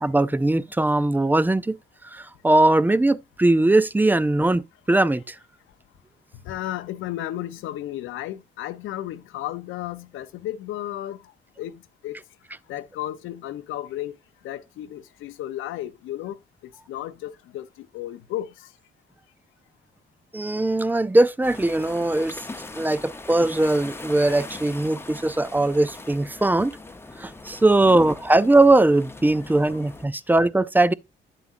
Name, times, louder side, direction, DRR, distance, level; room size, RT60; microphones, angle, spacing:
voice 1, 0.0-1.8 2.0-5.4 20.3-22.4 22.7-26.8 27.2-30.9, right 2 dB, 10° right, 0.4 m, -20 dB
voice 2, 6.4-11.3 11.6-12.2 12.7-14.2 14.4-16.4 16.9-18.7 27.9-28.1, left 13 dB, 85° left, 0.8 m, -33 dB
sound 1, 21.4-30.1, left 2 dB, 10° left, 0.8 m, -40 dB
9.5 x 7.6 x 2.5 m
cardioid pair, 90°, 20 cm